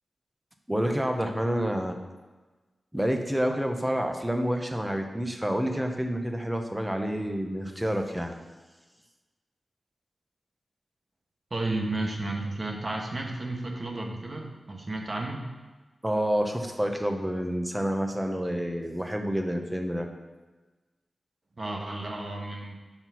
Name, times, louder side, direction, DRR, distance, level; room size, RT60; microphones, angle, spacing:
voice 1, 0.7-2.0 2.9-8.3 16.0-20.1, equal, 10° right, 4 dB, 1.0 m, -28 dB
voice 2, 11.5-15.4 21.6-22.7, right 2 dB, 50° right, 1 dB, 1.4 m, -32 dB
5.8 x 4.4 x 5.9 m, 1.2 s
cardioid pair, 45°, 0 cm